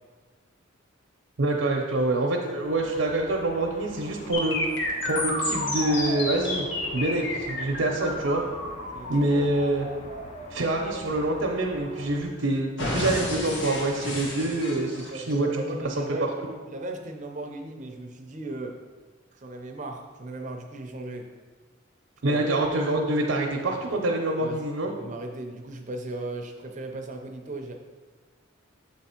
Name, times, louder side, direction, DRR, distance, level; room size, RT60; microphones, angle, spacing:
voice 1, 1.4-4.6 5.0-6.7 6.9-8.4 9.1-9.9 10.5-15.6 22.2-24.9, right 2 dB, 80° right, 0 dB, 0.7 m, -26 dB
sound 1, 2.6-12.2, left 1 dB, 35° left, 0.6 m, -45 dB
sound 2, 4.3-12.3 12.8-15.3, left 1 dB, 65° left, 1.1 m, -31 dB
voice 2, 8.9-9.4 15.1-16.3 16.7-18.8 19.3-21.3 22.3-22.4 24.4-27.7, right 2 dB, 35° right, 3 dB, 0.5 m, -37 dB
7.3 x 3.5 x 4.3 m, 1.4 s
head